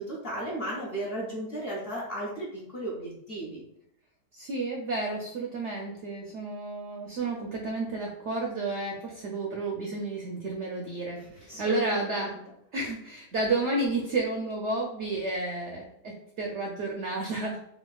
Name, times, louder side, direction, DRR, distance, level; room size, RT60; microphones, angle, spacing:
voice 1, 0.0-2.5 2.7-3.6 11.5-12.3, right 1 dB, 50° left, -5 dB, 0.7 m, -35 dB
voice 2, 4.3-12.3 12.7-17.6, right 2 dB, 75° right, -1 dB, 0.6 m, -31 dB
4.2 x 2.3 x 2.3 m, 0.74 s
omnidirectional pair, 1.8 m